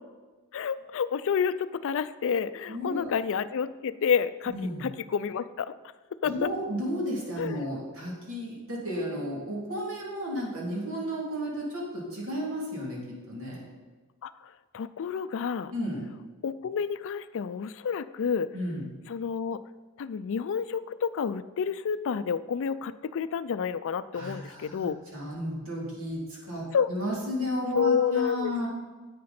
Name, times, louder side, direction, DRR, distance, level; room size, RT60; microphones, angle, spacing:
voice 1, 0.5-4.5 4.8-5.7 6.2-6.5 7.4-7.7 14.2-14.3 14.7-15.7 16.4-18.5 19.1-19.6 20.0-25.0 26.7-26.9 27.8-28.5, left 6 dB, 60° left, 14 dB, 0.4 m, -29 dB
voice 2, 2.7-3.1 4.5-4.9 6.3-13.6 15.7-16.1 18.5-18.9 24.1-24.9 25.1-28.7, equal, 65° right, -4 dB, 3.1 m, -33 dB
10.5 x 8.5 x 4.3 m, 1.3 s
head